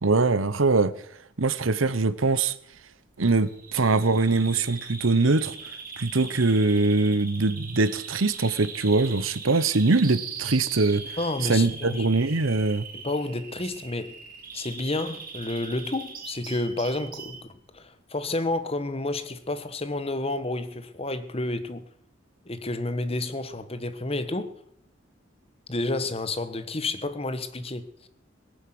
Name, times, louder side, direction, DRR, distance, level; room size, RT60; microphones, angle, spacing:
voice 1, 0.0-0.9 1.4-2.5 3.2-5.5 6.0-11.2 11.5-12.9, right 3 dB, 90° right, 1.0 m, -22 dB
Bird vocalization bird call bird song, 3.4-17.4, right 5 dB, 45° right, 3.9 m, -40 dB
voice 2, 11.2-12.1 12.9-14.1 14.5-21.9 22.4-24.5 25.7-27.9, left 2 dB, 30° left, 1.3 m, -30 dB
18.0 x 10.0 x 7.8 m
head